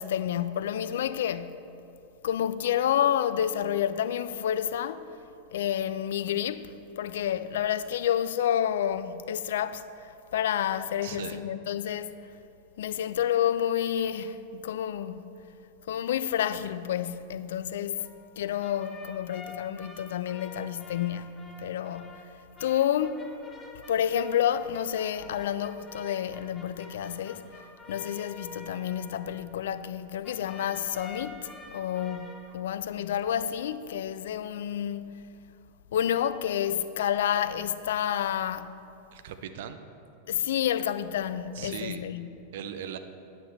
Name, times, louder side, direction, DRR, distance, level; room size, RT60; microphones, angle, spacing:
voice 1, 0.0-1.6 2.2-5.1 5.5-12.1 12.8-15.3 15.9-18.1 18.4-22.3 22.6-23.3 23.9-27.4 27.9-35.2 35.9-38.7 40.3-42.4, left 10 dB, 60° left, 0.3 m, -29 dB
voice 2, 11.0-11.4 39.1-39.8 41.5-42.1 42.5-43.0, right 9 dB, 55° right, 0.5 m, -38 dB
sound 1, 18.0-30.0 30.2-32.5, left 2 dB, 15° left, 0.8 m, -48 dB
9.3 x 9.0 x 3.2 m
figure-of-eight pair, 90°, 0 cm